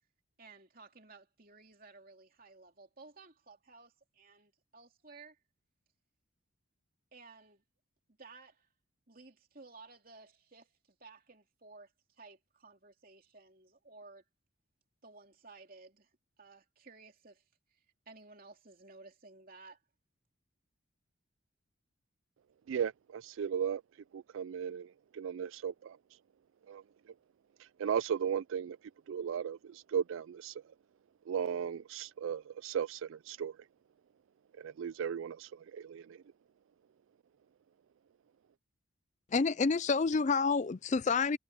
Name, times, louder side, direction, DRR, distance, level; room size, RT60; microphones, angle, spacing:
voice 1, 0.4-5.4 7.1-7.6 8.2-8.7 9.1-11.9 12.2-14.2 15.0-16.1 16.4-17.4 17.7-19.8, right 3 dB, 45° right, 3.2 m, -56 dB
voice 2, 22.7-23.8 24.1-26.0 26.7-26.8 27.6-28.8 29.1-30.6 31.3-33.6 34.6-36.2, right 8 dB, 70° right, 0.3 m, -36 dB
voice 3, 39.3-41.4, left 4 dB, 35° left, 0.4 m, -28 dB
head